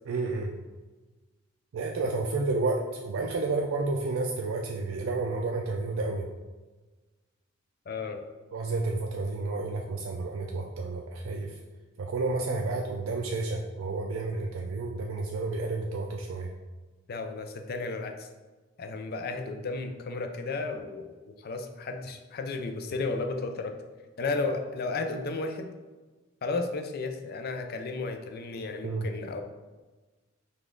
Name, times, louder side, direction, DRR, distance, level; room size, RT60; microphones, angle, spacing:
voice 1, 0.1-0.5 1.7-6.2 8.5-11.5 12.0-16.5 28.8-29.1, right 3 dB, 80° right, 1 dB, 0.4 m, -31 dB
voice 2, 7.9-8.2 17.1-18.3 18.8-23.7 24.2-25.7 26.4-29.4, left 3 dB, 50° left, 6 dB, 0.4 m, -33 dB
5.1 x 2.4 x 3.7 m, 1.3 s
head